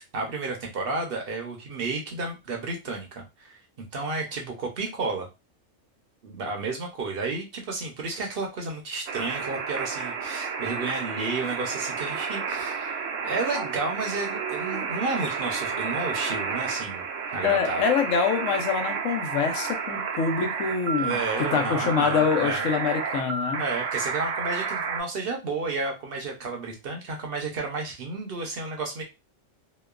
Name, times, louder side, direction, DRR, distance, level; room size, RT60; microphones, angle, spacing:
voice 1, 0.1-5.3 6.2-17.0 17.3-17.8 21.0-22.7 23.6-29.0, right 3 dB, 55° right, 1 dB, 0.8 m, -32 dB
sound 1, 9.1-25.0, right 5 dB, 80° right, 0.9 m, -31 dB
voice 2, 17.4-23.6, left 6 dB, 85° left, 4 dB, 1.0 m, -25 dB
2.9 x 2.1 x 2.3 m, 0.26 s
omnidirectional pair, 1.3 m